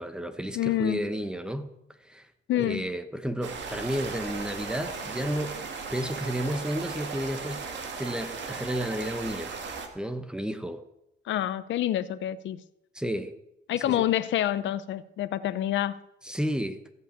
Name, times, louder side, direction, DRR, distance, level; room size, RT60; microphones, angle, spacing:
voice 1, 0.0-1.7 2.0-2.3 2.6-5.6 5.9-7.7 8.0-9.5 9.9-10.8 12.9-13.4 13.7-14.0 16.2-16.8, equal, 5° right, 1.1 m, -32 dB
voice 2, 0.5-1.1 2.5-2.9 11.3-12.6 13.7-16.0, left 12 dB, 70° left, 0.6 m, -27 dB
sound 1, 3.4-9.9, right 5 dB, 65° right, 2.0 m, -37 dB
14.0 x 5.6 x 8.7 m
cardioid pair, 90°, 20 cm